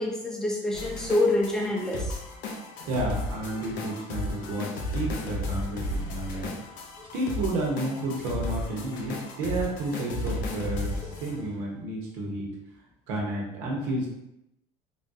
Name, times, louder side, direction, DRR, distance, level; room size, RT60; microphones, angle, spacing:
voice 1, 0.0-2.2, left 2 dB, 5° left, -2 dB, 0.7 m, -26 dB
sound 1, 0.7-11.7, left 1 dB, 65° left, 0.6 m, -34 dB
voice 2, 2.9-6.6 7.1-12.5 13.1-14.1, right 1 dB, 80° right, -2 dB, 0.9 m, -31 dB
3.6 x 2.3 x 2.6 m, 0.84 s
supercardioid pair, 110°, 15 cm